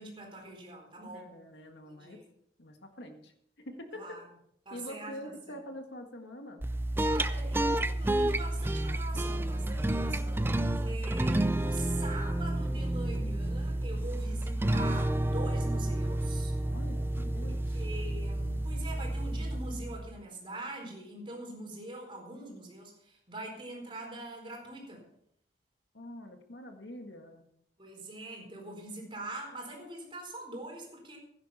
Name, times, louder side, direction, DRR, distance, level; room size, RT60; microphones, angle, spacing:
voice 1, 0.0-1.3 1.9-2.2 3.9-4.3 4.6-5.3 7.0-10.5 10.8-16.5 17.3-25.0 27.8-31.2, right 2 dB, 30° right, 0 dB, 4.4 m, -43 dB
voice 2, 1.1-2.2 2.6-4.2 4.7-6.6 10.7-11.0 16.7-17.7 25.9-27.4, left 1 dB, 70° left, 5 dB, 1.7 m, -45 dB
sound 1, 6.6-20.2, right 1 dB, 10° right, 0.4 m, -30 dB
16.0 x 10.5 x 4.3 m, 0.71 s
head